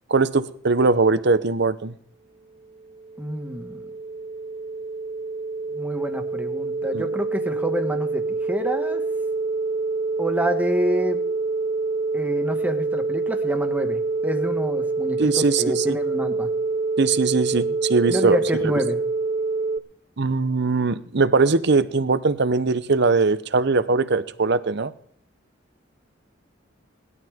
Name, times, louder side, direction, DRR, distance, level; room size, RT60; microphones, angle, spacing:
voice 1, 0.1-1.9 6.9-7.0 15.2-16.0 17.0-18.4 20.2-24.9, right 4 dB, 65° right, 14 dB, 0.8 m, -21 dB
sound 1, 2.8-19.8, right 3 dB, 30° right, 0.7 m, -26 dB
voice 2, 3.2-3.8 5.7-9.0 10.2-11.2 12.1-16.5 18.1-19.0, equal, 10° right, 5 dB, 1.4 m, -28 dB
19.5 x 12.0 x 3.6 m, 0.62 s
head